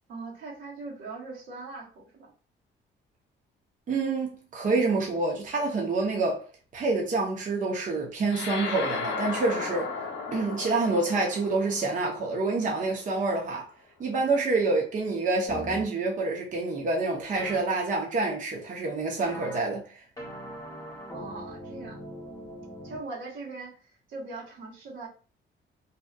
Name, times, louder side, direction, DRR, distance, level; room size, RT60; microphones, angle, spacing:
voice 1, 0.1-2.3 21.1-22.0 22.8-25.1, right 3 dB, 75° right, 1.1 m, -40 dB
voice 2, 3.9-6.5 6.7-9.9 10.3-13.7 14.0-20.0, right 3 dB, 40° right, 0.6 m, -27 dB
sound 1, 8.3-13.0, left 4 dB, 80° left, 0.6 m, -35 dB
sound 2, 15.5-15.8 17.3-17.6 19.2-19.6 20.2-23.0, equal, 20° left, 0.9 m, -40 dB
2.7 x 2.2 x 2.2 m
cardioid pair, 90°, 20 cm